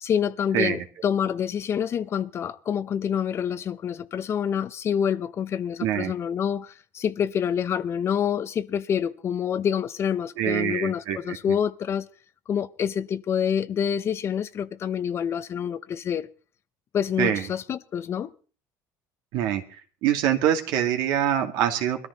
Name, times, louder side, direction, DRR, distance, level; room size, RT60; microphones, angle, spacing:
voice 1, 0.0-12.1 12.5-16.3 16.9-18.3, left 8 dB, 35° left, 0.8 m, -27 dB
voice 2, 0.5-0.8 5.8-6.1 10.4-11.4 17.2-17.4 19.3-19.6 20.0-22.1, right 10 dB, 70° right, 2.3 m, -24 dB
21.5 x 13.5 x 4.0 m
cardioid pair, 145°, 7 cm